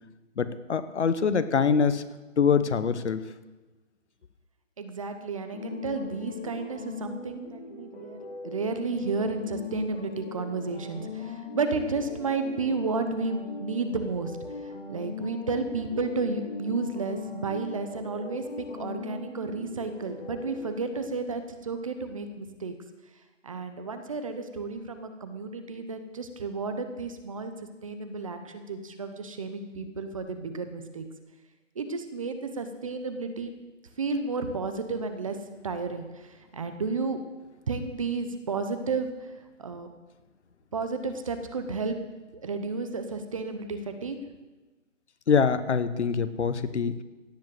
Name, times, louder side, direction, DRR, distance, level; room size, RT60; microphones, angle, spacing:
voice 1, 0.4-2.0 2.4-3.2 45.3-47.0, left 6 dB, 60° left, 12 dB, 1.1 m, -24 dB
voice 2, 4.8-14.3 14.9-18.4 18.7-22.7 23.4-27.5 27.8-31.1 31.8-33.6 34.0-35.4 35.6-37.2 37.7-39.1 39.6-39.9 40.7-42.0 42.4-44.2, right 4 dB, 25° right, 8 dB, 0.8 m, -32 dB
sound 1, 5.5-21.0, left 4 dB, 45° left, 3.5 m, -40 dB
16.5 x 7.5 x 7.7 m, 1.2 s
hypercardioid pair, 165°, 38 cm